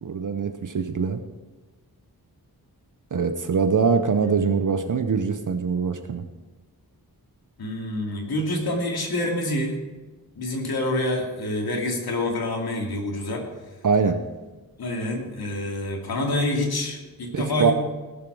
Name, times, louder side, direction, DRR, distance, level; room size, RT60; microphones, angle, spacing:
voice 1, 0.0-1.2 3.1-6.2 13.8-14.2 17.3-17.7, right 5 dB, 55° right, 8 dB, 0.8 m, -23 dB
voice 2, 4.1-4.6 7.6-9.8 10.4-13.5 14.8-17.7, left 1 dB, 80° left, 0 dB, 2.5 m, -27 dB
17.5 x 7.4 x 4.8 m, 1.3 s
wide cardioid pair, 125°, 37 cm